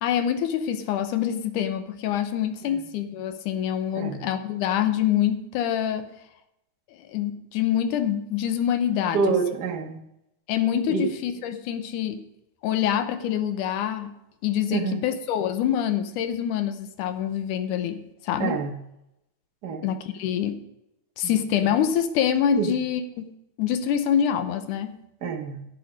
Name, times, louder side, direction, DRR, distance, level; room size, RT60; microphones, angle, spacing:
voice 1, 0.0-6.1 7.1-9.2 10.5-12.2 12.6-14.1 14.4-18.6 19.8-20.6 21.2-23.0 23.6-25.0, left 9 dB, 85° left, 9 dB, 2.4 m, -25 dB
voice 2, 9.1-10.0 10.9-11.1 14.7-15.0 18.4-18.8 19.6-19.8 21.2-21.4 22.6-22.7 25.2-25.6, right 5 dB, 70° right, 3 dB, 0.9 m, -27 dB
11.0 x 9.3 x 5.1 m, 0.85 s
omnidirectional pair, 3.5 m